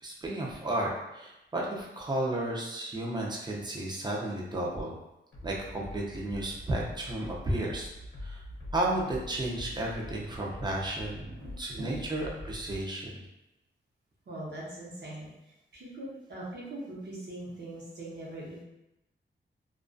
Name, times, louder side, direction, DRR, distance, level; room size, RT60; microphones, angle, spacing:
voice 1, 0.0-4.9 5.4-7.9 8.2-8.4 8.7-13.1, right 1 dB, 20° right, -3 dB, 0.5 m, -33 dB
sound 1, 5.3-12.8, left 1 dB, 75° left, 0.7 m, -44 dB
voice 2, 11.2-12.0 14.3-15.3 15.7-18.6, right 1 dB, 60° right, -6 dB, 0.8 m, -41 dB
2.3 x 2.3 x 2.5 m, 0.93 s
wide cardioid pair, 140°, 20 cm